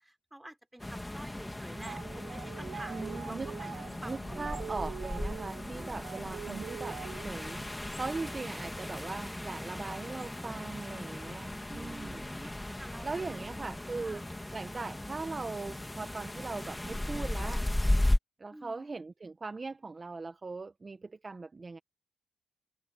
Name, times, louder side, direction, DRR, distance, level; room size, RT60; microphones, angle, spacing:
voice 1, 0.0-4.7 5.7-6.1 11.7-13.5 14.0-14.3 18.5-18.9, right 1 dB, 5° right, 4.8 m, -49 dB
sound 1, 0.8-18.2, left 1 dB, 10° left, 2.4 m, -36 dB
sound 2, 1.7-7.5, right 9 dB, 65° right, 0.5 m, -44 dB
voice 2, 2.9-3.5 4.1-12.2 13.0-14.2 14.5-17.6 18.4-21.8, right 3 dB, 25° right, 1.3 m, -40 dB
sound 3, 8.1-11.1, right 12 dB, 80° right, 6.8 m, -63 dB
cardioid pair, 90°, 0 cm